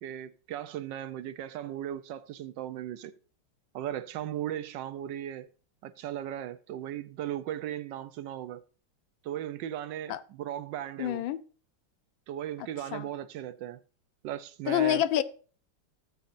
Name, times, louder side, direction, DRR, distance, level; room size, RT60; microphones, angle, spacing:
voice 1, 0.0-3.1 3.7-5.5 5.8-8.6 9.2-11.2 12.3-13.8 14.2-15.0, right 11 dB, 70° right, 1.1 m, -37 dB
voice 2, 11.0-11.4 12.9-13.1 14.7-15.2, left 11 dB, 75° left, 1.3 m, -27 dB
18.0 x 7.0 x 2.6 m
omnidirectional pair, 2.3 m